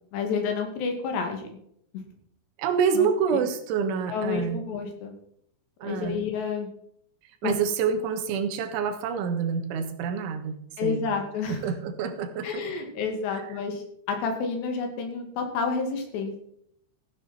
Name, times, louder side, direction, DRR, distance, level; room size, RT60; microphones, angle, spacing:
voice 1, 0.1-1.5 2.9-3.4 4.1-5.1 5.8-6.7 7.4-7.5 10.8-11.6 12.4-16.4, left 5 dB, 70° left, 4 dB, 4.3 m, -30 dB
voice 2, 2.6-4.6 5.8-6.2 7.4-10.6 10.8-11.1 11.5-12.6 13.3-13.5, right 6 dB, 90° right, 8 dB, 3.8 m, -27 dB
15.0 x 10.0 x 4.3 m, 0.70 s
omnidirectional pair, 5.3 m